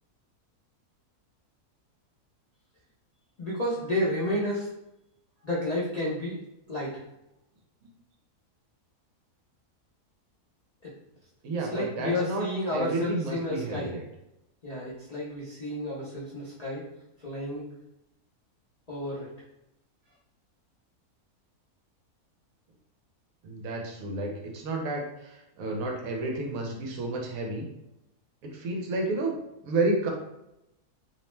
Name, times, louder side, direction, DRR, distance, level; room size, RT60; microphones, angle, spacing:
voice 1, 3.4-4.7 5.4-6.4 6.7-7.0 10.8-10.9 11.7-14.0 14.6-16.9 17.2-17.7 18.9-19.3, left 1 dB, 80° left, -7 dB, 0.3 m, -31 dB
voice 2, 11.4-14.0 23.4-27.7 28.4-29.4 29.6-30.1, right 2 dB, 70° right, 1 dB, 0.9 m, -31 dB
2.7 x 2.0 x 3.1 m, 0.88 s
omnidirectional pair, 1.6 m